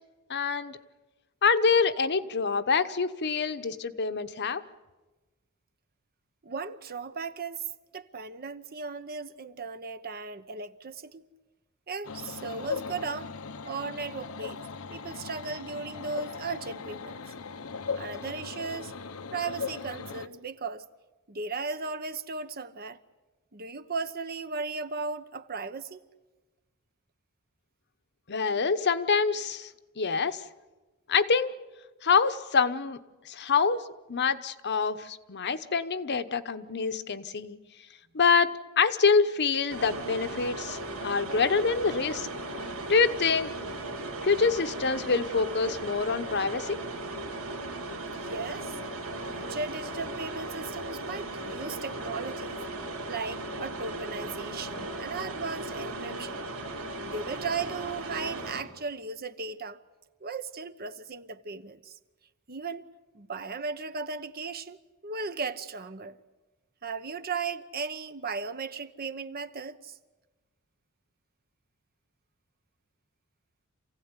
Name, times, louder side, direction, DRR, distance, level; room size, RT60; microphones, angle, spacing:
voice 1, 0.3-0.8 1.4-4.6 28.3-29.7 30.0-30.4 31.1-31.5 32.0-33.0 33.3-33.8 34.1-37.6 38.1-42.3 42.9-43.5 44.2-46.8, left 5 dB, 55° left, 1.0 m, -26 dB
voice 2, 6.4-7.6 7.9-11.2 11.9-13.3 13.6-14.6 14.9-17.2 17.9-18.9 19.3-20.8 21.3-23.0 23.5-26.0 48.1-48.8 49.3-52.6 53.1-56.4 57.0-59.8 60.2-62.0 62.5-62.9 63.1-66.2 66.8-70.0, right 4 dB, 45° right, 1.0 m, -36 dB
sound 1, 12.0-20.3, left 5 dB, 90° left, 1.0 m, -38 dB
sound 2, 39.7-58.6, right 2 dB, 85° right, 3.2 m, -37 dB
27.5 x 16.5 x 9.7 m
head